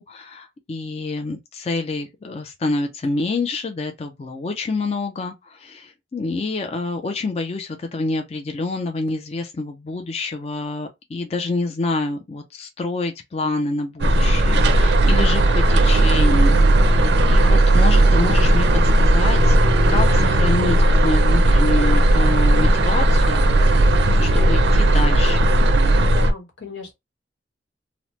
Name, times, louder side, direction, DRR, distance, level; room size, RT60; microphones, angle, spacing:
voice 1, 0.0-18.7 19.0-19.6 19.9-23.4 24.2-25.5, left 3 dB, 35° left, 0.4 m, -27 dB
sound 1, 14.0-26.3, right 1 dB, 65° right, 0.4 m, -16 dB
voice 2, 26.0-26.9, left 5 dB, 90° left, 1.1 m, -36 dB
2.9 x 2.0 x 3.0 m
head